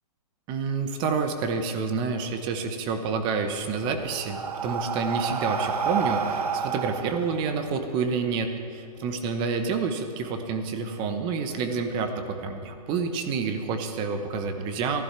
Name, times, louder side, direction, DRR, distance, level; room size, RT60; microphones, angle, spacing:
voice 1, 0.5-15.0, right 5 dB, 25° right, 6 dB, 1.1 m, -28 dB
Breathing, 3.5-8.2, right 6 dB, 75° right, 1.0 m, -30 dB
15.0 x 11.0 x 5.9 m, 2.7 s
hypercardioid pair, 145°, 20 cm